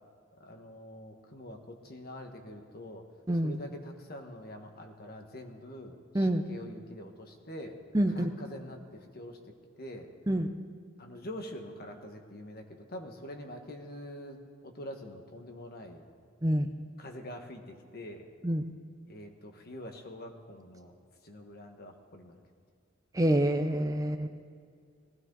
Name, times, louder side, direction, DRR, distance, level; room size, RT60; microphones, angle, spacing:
voice 1, 0.4-3.0 3.4-7.8 8.1-9.4 9.8-10.1 11.0-14.4 14.6-16.0 17.0-18.3 19.1-20.9 21.2-22.3, left 1 dB, 50° left, 4 dB, 1.5 m, -45 dB
voice 2, 7.9-8.3 10.3-10.5 16.4-16.7 18.4-18.6 23.1-24.3, right 1 dB, 15° right, 6 dB, 0.6 m, -27 dB
19.5 x 16.0 x 4.0 m, 2.2 s
head